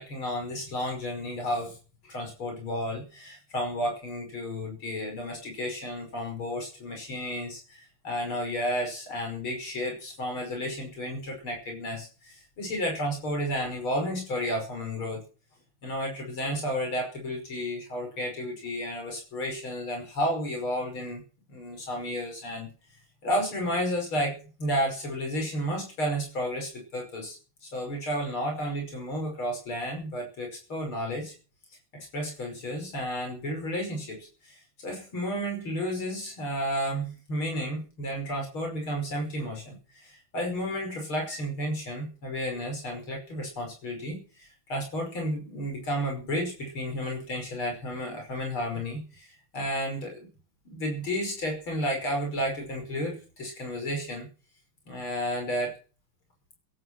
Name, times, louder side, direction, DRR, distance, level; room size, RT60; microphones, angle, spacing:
voice 1, 0.0-1.8 2.0-15.2 15.8-21.2 21.5-22.7 23.2-27.4 27.6-31.3 32.1-50.3 50.7-54.3 54.9-55.8, equal, 75° left, 2 dB, 6.3 m, -32 dB
17.5 x 12.0 x 6.2 m, 0.37 s
omnidirectional pair, 2.3 m